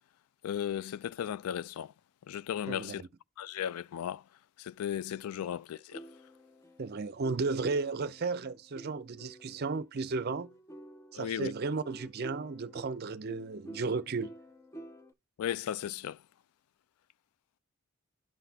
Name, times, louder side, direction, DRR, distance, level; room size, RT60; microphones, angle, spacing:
voice 1, 0.4-1.9 2.3-3.0 3.4-4.2 4.6-6.0 11.1-11.5 15.4-16.2, left 10 dB, 85° left, 0.3 m, -35 dB
voice 2, 2.7-3.1 6.8-10.5 11.1-14.3, right 4 dB, 45° right, 0.5 m, -34 dB
sound 1, 5.9-9.8 10.3-15.1, right 1 dB, 15° left, 0.4 m, -50 dB
11.0 x 4.0 x 2.7 m
head